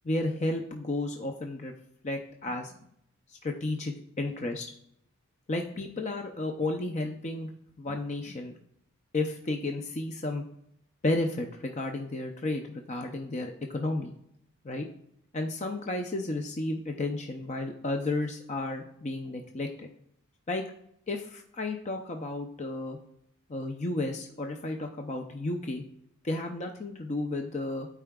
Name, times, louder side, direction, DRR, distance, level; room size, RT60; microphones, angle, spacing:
voice 1, 0.0-1.7 2.0-2.7 3.3-4.7 5.5-7.5 7.8-8.5 9.1-10.4 11.0-14.1 14.6-14.9 15.3-19.9 20.5-20.6 21.1-23.0 23.5-25.8 26.2-27.9, left 2 dB, 30° left, 4 dB, 0.5 m, -32 dB
12.0 x 4.7 x 2.3 m, 0.74 s
head